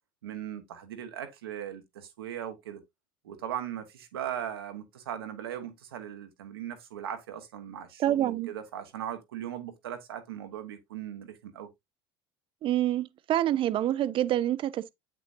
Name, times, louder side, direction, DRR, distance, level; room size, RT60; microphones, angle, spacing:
voice 1, 0.2-2.8 3.2-11.7, right 10 dB, 90° right, 1.2 m, -39 dB
voice 2, 8.0-8.5 12.6-14.9, right 12 dB, 45° right, 0.6 m, -27 dB
8.1 x 6.0 x 2.6 m
hypercardioid pair, 80°, 12 cm